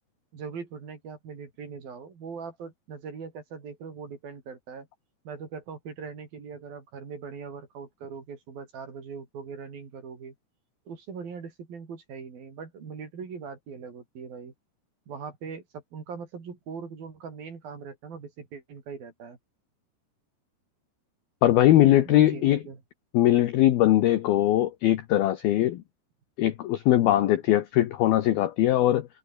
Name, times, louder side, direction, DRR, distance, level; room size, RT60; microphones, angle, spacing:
voice 1, 0.3-4.9 5.3-10.3 10.9-14.5 15.1-19.4 22.1-22.8, right 5 dB, 45° right, 5.7 m, -40 dB
voice 2, 21.4-22.6 23.1-25.8 26.4-29.1, left 13 dB, 75° left, 2.3 m, -21 dB
omnidirectional pair, 5.9 m